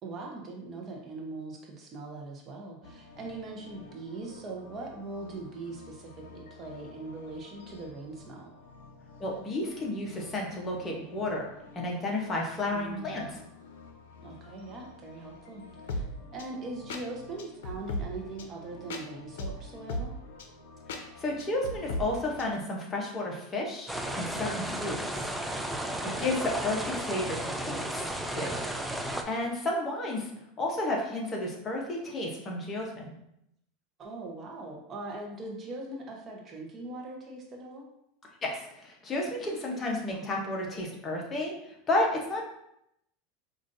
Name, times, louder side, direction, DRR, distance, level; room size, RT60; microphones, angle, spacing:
voice 1, 0.0-8.5 12.7-13.1 14.2-16.0 16.3-20.2 25.9-26.1 29.4-29.5 34.0-37.9 40.1-40.3, right 3 dB, 30° right, 0 dB, 0.8 m, -41 dB
sound 1, 2.8-22.5, left 1 dB, 85° left, 0.5 m, -43 dB
voice 2, 9.2-11.5 11.7-13.4 20.9-25.2 26.2-28.6 29.0-30.3 30.6-33.1 38.4-42.4, left 2 dB, 25° left, -1 dB, 0.9 m, -32 dB
sound 2, 23.9-29.2, right 1 dB, 5° right, 0.4 m, -34 dB
5.0 x 2.5 x 2.6 m, 0.79 s
supercardioid pair, 125°, 0 cm